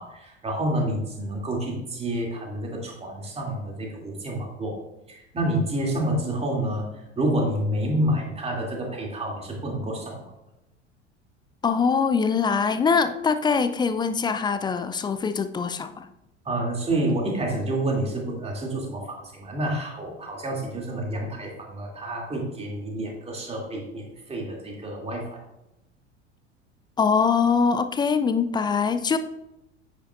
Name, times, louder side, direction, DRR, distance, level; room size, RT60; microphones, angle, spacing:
voice 1, 0.0-4.8 5.1-10.2 16.4-25.4, right 1 dB, 15° right, -1 dB, 2.7 m, -28 dB
voice 2, 11.6-16.1 27.0-29.2, left 5 dB, 15° left, 10 dB, 0.4 m, -23 dB
9.9 x 9.2 x 2.5 m, 0.90 s
figure-of-eight pair, 75°, 35 cm